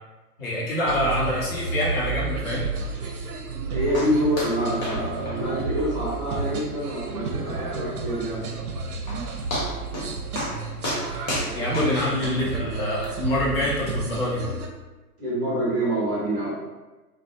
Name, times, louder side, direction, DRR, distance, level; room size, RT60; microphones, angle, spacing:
voice 1, 0.4-2.7 11.5-14.5, left 1 dB, 40° left, -6 dB, 0.7 m, -26 dB
sound 1, 0.9-14.7, right 4 dB, 70° right, 0.5 m, -31 dB
voice 2, 3.7-8.8 9.1-9.5 11.8-11.9 15.2-16.6, equal, 25° right, -7 dB, 0.6 m, -27 dB
sound 2, 3.9-4.1 4.4-4.6 4.8-5.0 5.3-5.4 5.8-5.9 6.3-6.4 6.8-6.9 8.6-8.7 9.1-9.2 9.5-10.1 10.4-10.6 10.8-12.3 13.0-13.1, left 1 dB, 60° left, 1.0 m, -30 dB
2.3 x 2.0 x 2.7 m, 1.1 s
figure-of-eight pair, 120°, 48 cm